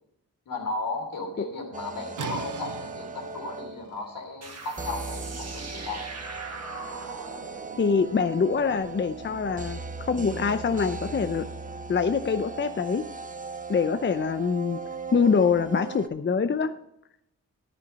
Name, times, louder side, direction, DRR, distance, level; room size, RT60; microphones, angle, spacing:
voice 1, 0.5-6.0, left 3 dB, 80° left, 2 dB, 3.1 m, -35 dB
sound 1, 1.7-4.0 4.8-16.1, right 4 dB, 25° right, 0.9 m, -38 dB
sound 2, 2.2-7.8, right 8 dB, 65° right, 0.7 m, -43 dB
sound 3, 4.4-9.7, right 3 dB, 50° right, 1.8 m, -41 dB
voice 2, 7.8-11.5 11.9-13.0 13.7-14.8 15.1-16.7, left 5 dB, 35° left, 10 dB, 0.6 m, -24 dB
10.5 x 10.0 x 4.1 m, 0.77 s
cardioid pair, 60°, 33 cm